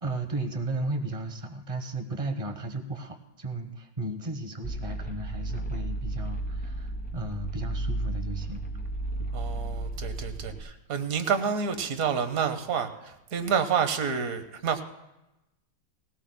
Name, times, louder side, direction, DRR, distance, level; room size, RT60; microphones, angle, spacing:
voice 1, 0.0-8.7 9.2-9.3, right 2 dB, 30° right, 6 dB, 0.6 m, -34 dB
sound 1, 4.6-10.6, right 2 dB, 5° left, 1.0 m, -33 dB
voice 2, 9.3-14.8, right 6 dB, 55° right, 9 dB, 1.2 m, -29 dB
20.0 x 17.0 x 2.2 m, 0.95 s
omnidirectional pair, 2.0 m